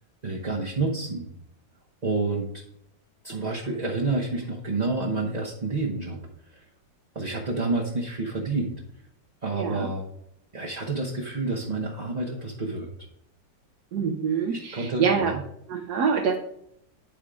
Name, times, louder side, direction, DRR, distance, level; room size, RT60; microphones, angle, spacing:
voice 1, 0.2-1.3 2.0-2.6 3.2-6.2 6.5-6.6 7.1-8.7 9.4-10.0 10.5-12.9 14.5-15.4, right 3 dB, 35° right, -3 dB, 0.7 m, -29 dB
voice 2, 9.5-9.9 13.9-15.4 15.7-16.3, right 6 dB, 65° right, 2 dB, 1.2 m, -25 dB
10.5 x 3.6 x 4.9 m, 0.76 s
omnidirectional pair, 2.0 m